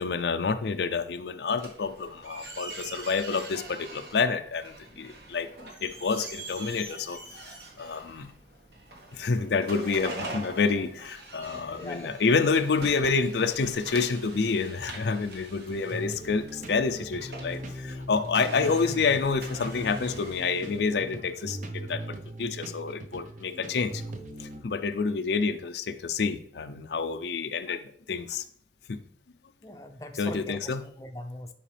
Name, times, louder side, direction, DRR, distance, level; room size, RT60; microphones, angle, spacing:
voice 1, 0.0-7.2 7.8-8.3 9.1-24.0 24.6-27.8 28.1-28.4 28.9-29.0 30.1-30.9, left 4 dB, 70° left, 9 dB, 0.5 m, -28 dB
sound 1, 1.6-20.8, right 2 dB, 60° right, 1.4 m, -43 dB
voice 2, 11.5-12.2 29.6-31.5, left 1 dB, 20° left, 5 dB, 0.6 m, -41 dB
sound 2, 15.7-24.6, right 1 dB, 45° right, 0.7 m, -39 dB
9.9 x 4.7 x 3.4 m, 0.64 s
head